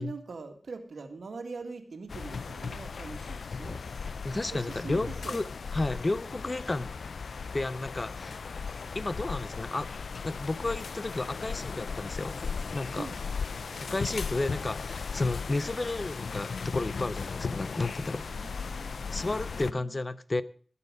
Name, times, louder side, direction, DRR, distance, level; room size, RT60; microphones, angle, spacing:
voice 1, 0.0-3.8 4.3-5.4 13.0-13.2 18.3-19.0 19.5-20.0, right 4 dB, 85° right, 6 dB, 1.9 m, -42 dB
sound 1, 2.1-19.7, left 5 dB, 90° left, 0.5 m, -37 dB
voice 2, 3.6-5.4 5.7-6.9 7.5-8.4 8.9-9.9 10.2-12.4 12.7-13.1 13.8-18.2 19.1-20.4, left 2 dB, 35° left, 15 dB, 0.7 m, -32 dB
19.5 x 7.0 x 4.9 m, 0.43 s
wide cardioid pair, 90°, 0 cm